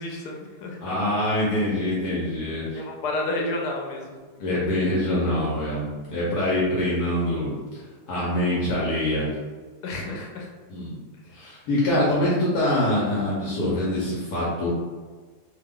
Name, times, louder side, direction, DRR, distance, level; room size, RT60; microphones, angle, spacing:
voice 1, 0.0-0.9 2.7-4.1 9.8-10.5 11.4-11.5, left 2 dB, 90° left, 1 dB, 1.2 m, -31 dB
voice 2, 0.8-2.8 4.4-7.8 8.1-9.3 10.7-11.0 11.3-14.7, left 1 dB, 75° left, -7 dB, 1.2 m, -24 dB
2.8 x 2.3 x 3.5 m, 1.4 s
omnidirectional pair, 1.7 m